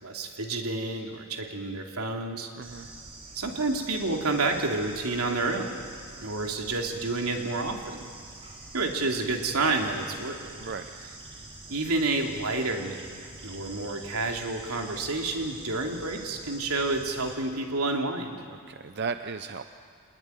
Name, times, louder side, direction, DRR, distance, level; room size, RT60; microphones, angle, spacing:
voice 1, 0.0-2.5 3.3-5.8 6.2-8.0 8.7-10.5 11.7-18.4, right 3 dB, 85° right, 2 dB, 3.2 m, -29 dB
Bird / Insect, 2.6-17.3, right 2 dB, 25° right, 4.1 m, -46 dB
voice 2, 2.6-2.9 10.6-11.1 18.5-19.6, right 5 dB, 50° right, 9 dB, 0.7 m, -36 dB
27.0 x 20.0 x 9.9 m, 2.2 s
head